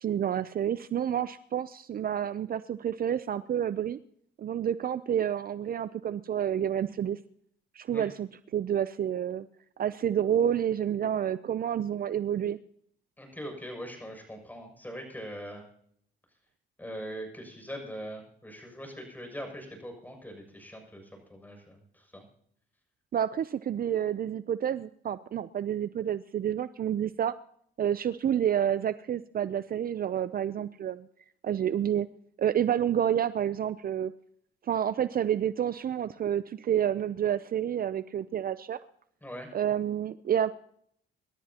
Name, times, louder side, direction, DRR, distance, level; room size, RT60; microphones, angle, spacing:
voice 1, 0.0-4.0 4.4-7.2 7.7-9.5 9.8-12.6 23.1-27.3 27.8-31.1 31.4-32.1 32.4-34.1 34.6-38.8 39.5-40.5, right 9 dB, 45° right, 14 dB, 0.6 m, -29 dB
voice 2, 13.2-15.7 16.8-22.2 39.2-39.5, equal, 10° left, 3 dB, 7.0 m, -42 dB
26.5 x 12.5 x 2.9 m, 0.67 s
cardioid pair, 90°, 20 cm